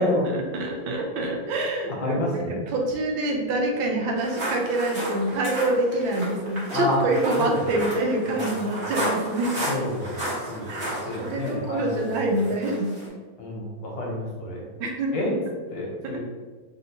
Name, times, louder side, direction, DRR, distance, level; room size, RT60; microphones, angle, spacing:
voice 1, 0.0-2.2 2.5-9.8 10.7-10.9 11.2-12.9 14.8-15.3 16.0-16.2, right 2 dB, 75° right, 1 dB, 1.3 m, -26 dB
voice 2, 1.9-2.6 6.7-7.0 7.4-7.5 8.8-8.9 9.7-12.0 13.4-14.7 15.1-15.3 15.7-16.2, left 1 dB, 70° left, -2 dB, 1.4 m, -29 dB
sound 1, 4.2-13.1, right 1 dB, 35° right, 1.1 m, -33 dB
3.4 x 2.7 x 2.7 m, 1.4 s
omnidirectional pair, 2.2 m